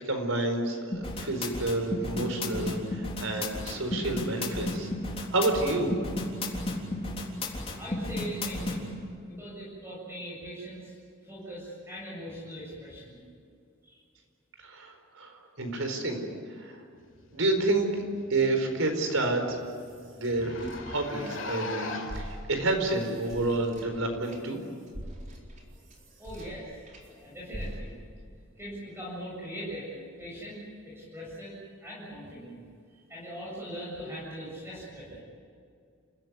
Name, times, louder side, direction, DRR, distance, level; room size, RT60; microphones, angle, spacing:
voice 1, 0.0-4.9 5.3-5.9 14.6-16.2 16.6-16.8 17.3-17.9 18.3-19.6 20.2-20.6 20.8-24.6, right 2 dB, 80° right, 5 dB, 4.6 m, -29 dB
sound 1, 0.9-8.8, left 2 dB, 30° left, 3.6 m, -32 dB
voice 2, 7.7-8.9 9.2-10.9 11.2-13.2 13.8-14.0 26.2-27.9 28.6-32.6 33.1-35.2, equal, 10° right, -6 dB, 7.7 m, -41 dB
Zipper (clothing), 17.8-17.9 18.2-18.3 18.7-18.8 19.1-19.2 19.5-19.6 20.3-22.3 23.0-23.1 24.1-24.2, left 2 dB, 70° left, 6.0 m, -37 dB
sound 2, 19.4-21.7 22.0-27.1 27.5-28.2, equal, 40° right, 4.2 m, -44 dB
29.5 x 16.5 x 9.7 m, 2.3 s
head